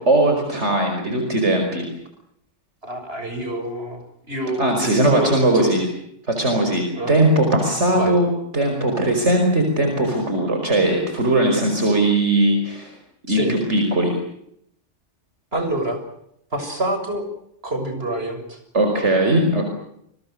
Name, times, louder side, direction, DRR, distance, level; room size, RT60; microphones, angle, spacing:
voice 1, 0.0-1.9 4.6-5.9 6.3-12.9 13.3-14.1 18.7-19.7, right 1 dB, 75° right, 4 dB, 5.6 m, -19 dB
voice 2, 2.8-4.0 4.3-5.7 7.0-7.1 7.9-8.2 13.3-13.5 15.5-16.0 16.5-17.2 17.6-18.6, right 1 dB, 55° right, 6 dB, 7.2 m, -27 dB
30.0 x 23.0 x 6.5 m, 0.73 s
omnidirectional pair, 1.2 m